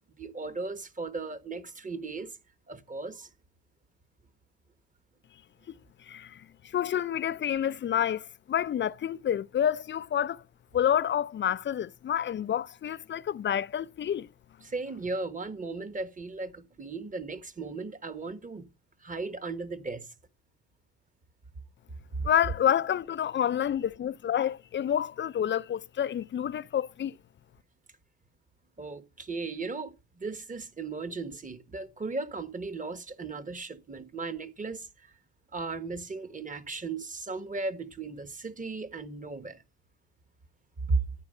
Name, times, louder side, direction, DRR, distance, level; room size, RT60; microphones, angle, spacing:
voice 1, 0.2-2.3 2.7-3.3 14.6-18.7 19.0-20.1 22.2-22.3 28.8-34.9 35.5-39.6 40.9-41.0, right 3 dB, 25° right, 1.2 m, -36 dB
voice 2, 6.1-6.4 6.7-10.4 10.7-14.3 22.2-27.1, left 9 dB, 40° left, 0.4 m, -28 dB
10.5 x 4.7 x 6.5 m
cardioid pair, 90°, 30 cm